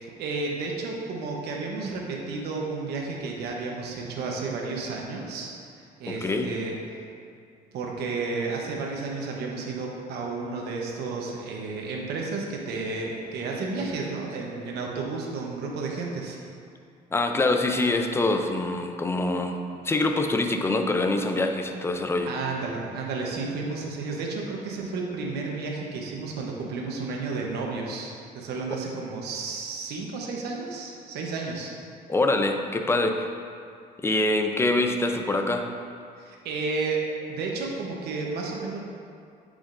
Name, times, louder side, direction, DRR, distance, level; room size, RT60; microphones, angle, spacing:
voice 1, 0.0-5.5 5.8-6.8 7.7-16.4 22.3-31.7 36.2-37.0 37.3-38.8, right 3 dB, 75° right, -1 dB, 1.0 m, -32 dB
voice 2, 6.1-6.5 17.1-19.6 19.8-22.3 32.1-33.3 34.0-35.7, left 2 dB, 15° left, 5 dB, 0.5 m, -25 dB
8.9 x 4.9 x 2.6 m, 2.4 s
cardioid pair, 110°, 17 cm